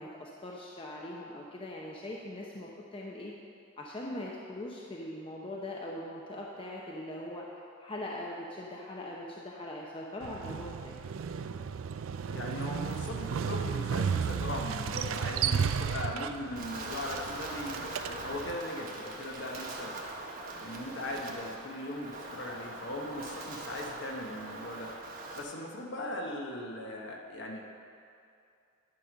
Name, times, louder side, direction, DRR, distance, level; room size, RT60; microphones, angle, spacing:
voice 1, 0.0-3.4 3.8-7.5 7.8-10.9 26.0-26.2, left 1 dB, 25° left, -3 dB, 0.7 m, -41 dB
Motorcycle, 10.2-18.6, right 7 dB, 90° right, 0.4 m, -34 dB
voice 2, 12.3-19.9 20.6-24.9 25.3-27.6, left 1 dB, 60° left, 0 dB, 1.2 m, -39 dB
Wind, 16.6-25.4, right 2 dB, 45° right, 1.1 m, -42 dB
10.5 x 5.3 x 6.3 m, 2.5 s
head